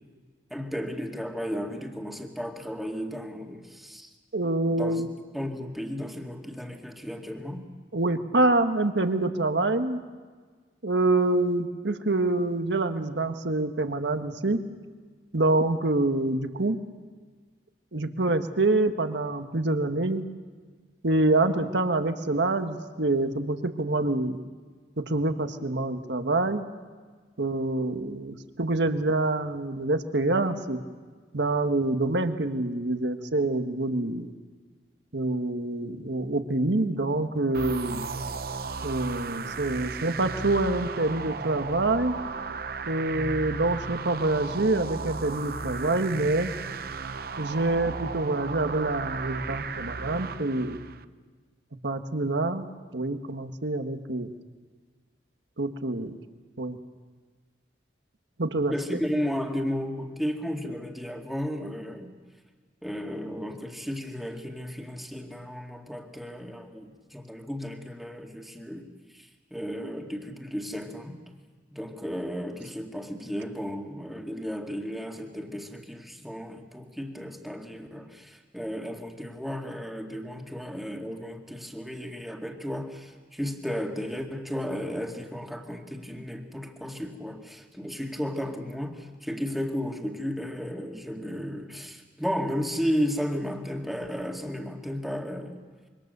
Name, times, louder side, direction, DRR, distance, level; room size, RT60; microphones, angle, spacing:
voice 1, 0.5-4.1 4.8-5.0 5.3-7.7 58.7-62.1 62.8-68.9 69.1-71.2 71.7-95.7, equal, ahead, 1 dB, 2.1 m, -34 dB
voice 2, 4.3-5.1 7.9-10.0 10.8-14.6 15.3-16.8 17.9-20.2 21.0-24.4 25.0-26.6 27.4-30.8 31.3-34.3 35.1-38.1 38.8-42.2 42.9-46.5 47.4-50.8 51.8-52.7 52.9-54.3 55.6-56.2 56.6-56.8 58.4-58.7, right 2 dB, 75° right, 7 dB, 1.5 m, -26 dB
sound 1, 37.5-51.0, right 4 dB, 55° right, 0.8 m, -35 dB
26.5 x 24.5 x 6.8 m, 1.5 s
head